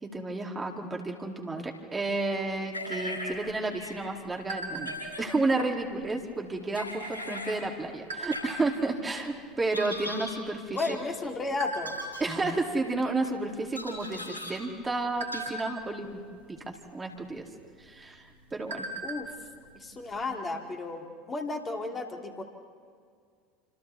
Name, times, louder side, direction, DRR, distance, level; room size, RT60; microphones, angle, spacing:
voice 1, 0.0-11.0 12.2-16.2 16.5-17.4 17.8-18.9, right 2 dB, 20° right, 1 dB, 2.7 m, -31 dB
sound 1, 2.7-3.3 3.8-3.9 4.8-5.2 6.7-7.6 8.3-8.4 9.7-10.3 10.8-10.9 11.8-12.2 13.7-14.5 15.3-15.4, left 1 dB, 85° left, 6.5 m, -38 dB
sound 2, 3.3-5.3 5.8-6.1 6.3-6.7 7.4-8.9 9.5-9.6 9.8-11.1 11.6-12.1 12.6-12.9 13.2-13.4 13.8-14.4 14.8-16.2 17.3-17.4 17.8-17.9 18.3-19.4 19.6-19.7 20.1-20.2, right 2 dB, 75° right, 2.3 m, -38 dB
voice 2, 10.7-12.0 19.0-19.3 19.7-22.4, left 3 dB, 25° left, 2 dB, 2.6 m, -33 dB
29.5 x 26.5 x 3.5 m, 2.1 s
figure-of-eight pair, 75°, 0 cm